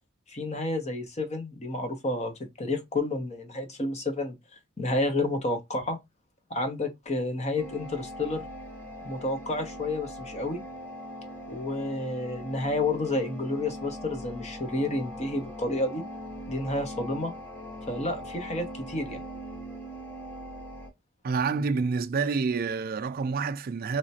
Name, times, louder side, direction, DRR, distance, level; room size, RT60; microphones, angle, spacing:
voice 1, 0.3-4.4 4.8-6.0 6.5-8.4 9.0-10.6 11.5-16.0 16.5-17.3 17.9-19.2, left 2 dB, 35° left, 0.9 m, -30 dB
sound 1, 7.6-20.9, equal, 10° left, 1.4 m, -41 dB
voice 2, 21.2-24.0, right 4 dB, 45° right, 0.4 m, -28 dB
3.2 x 2.9 x 2.8 m
head